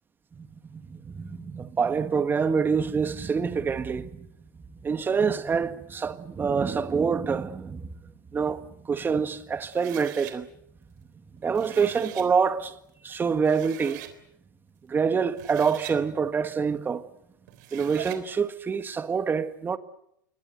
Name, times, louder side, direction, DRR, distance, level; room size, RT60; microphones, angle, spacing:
voice 1, 0.4-4.3 4.8-7.9 8.3-10.5 11.4-12.7 13.0-14.0 14.9-17.0 17.7-19.8, right 6 dB, 20° right, 1.7 m, -26 dB
sound 1, 9.7-10.4 11.4-12.3 13.1-13.2 13.5-14.2 15.2-16.0 17.5-18.2, right 13 dB, 60° right, 3.6 m, -42 dB
26.0 x 22.0 x 8.1 m
hypercardioid pair, 110°, 11 cm